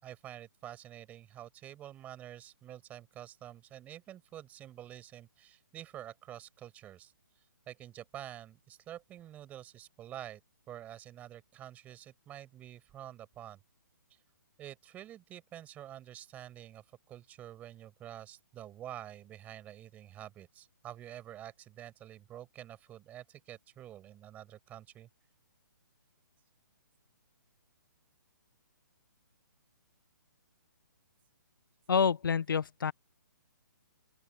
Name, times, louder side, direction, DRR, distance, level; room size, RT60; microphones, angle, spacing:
voice 1, 0.0-7.1 7.7-10.4 10.7-13.6 14.1-14.2 14.6-25.1, right 12 dB, 15° right, 5.3 m, -48 dB
voice 2, 31.9-32.9, left 6 dB, 80° left, 0.9 m, -28 dB
open air
hypercardioid pair, 160°, 11 cm